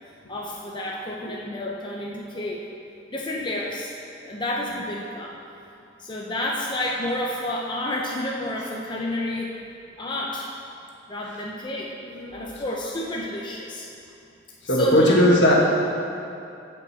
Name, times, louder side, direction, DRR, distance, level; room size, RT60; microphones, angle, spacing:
voice 1, 0.3-2.6 3.1-3.9 4.2-5.4 6.0-9.6 10.0-10.5 11.1-11.9 12.3-13.9 14.8-15.2, left 1 dB, 25° left, -3 dB, 0.7 m, -30 dB
voice 2, 12.0-12.6 14.7-15.5, equal, 70° left, -3 dB, 1.7 m, -19 dB
15.5 x 5.4 x 4.3 m, 2.6 s
head